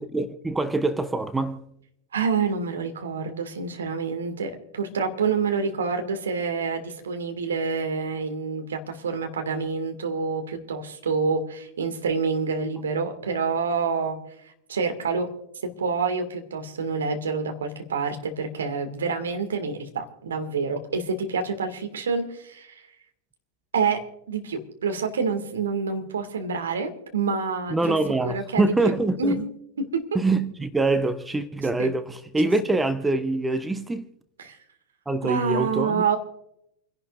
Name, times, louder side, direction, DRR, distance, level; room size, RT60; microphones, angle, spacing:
voice 1, 0.1-1.7 27.7-29.4 30.1-34.1 35.1-36.0, right 2 dB, 10° right, 0.7 m, -24 dB
voice 2, 2.1-14.2 14.7-15.3 15.8-22.7 23.7-28.0 28.2-29.5 29.8-30.2 31.8-31.9 34.4-34.6 35.2-36.2, right 5 dB, 65° right, 2.1 m, -27 dB
29.0 x 11.0 x 2.6 m
figure-of-eight pair, 90°, 0 cm